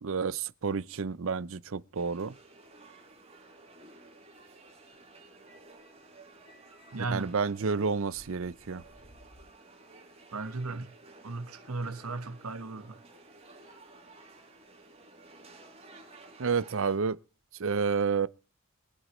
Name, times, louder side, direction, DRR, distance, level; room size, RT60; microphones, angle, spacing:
voice 1, 0.0-2.4 6.9-8.8 16.4-17.2 17.6-18.3, right 5 dB, 65° right, 0.6 m, -30 dB
sound 1, 1.9-17.0, right 2 dB, 30° right, 4.8 m, -54 dB
voice 2, 6.9-7.3 10.3-10.9 11.2-13.0, right 3 dB, 85° right, 1.4 m, -36 dB
sound 2, 7.2-7.4 7.9-9.5, equal, 80° left, 6.3 m, -57 dB
23.5 x 8.1 x 3.1 m
head